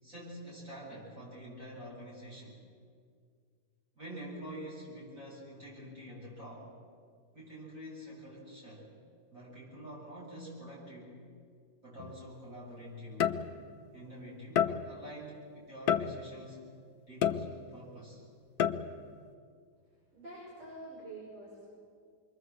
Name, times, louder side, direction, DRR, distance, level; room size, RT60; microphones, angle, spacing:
voice 1, 0.0-2.6 4.0-6.7 7.3-8.8 9.3-11.1 11.8-13.4 13.9-16.6 17.1-18.2, equal, 40° right, -6 dB, 8.6 m, -47 dB
sound 1, 12.0-12.2 13.2-13.8 14.6-15.1 15.9-16.5 17.2-17.9 18.6-19.1, left 9 dB, 60° left, 1.2 m, -30 dB
voice 2, 20.1-21.7, right 2 dB, 80° right, -5 dB, 7.3 m, -47 dB
27.0 x 22.5 x 7.9 m, 2.1 s
omnidirectional pair, 2.2 m